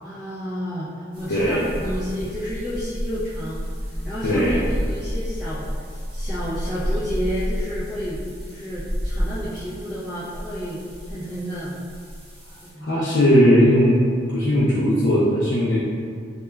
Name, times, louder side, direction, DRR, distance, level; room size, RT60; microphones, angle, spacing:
voice 1, 0.0-10.8 11.1-11.8 12.7-13.1, equal, ahead, -13 dB, 0.4 m, -31 dB
sound 1, 1.1-12.7, equal, 25° right, 0.7 m, -31 dB
voice 2, 1.3-1.7 4.2-4.6 12.8-14.0 14.3-15.8, equal, 65° left, -8 dB, 0.4 m, -18 dB
2.2 x 2.2 x 3.0 m, 2.2 s
head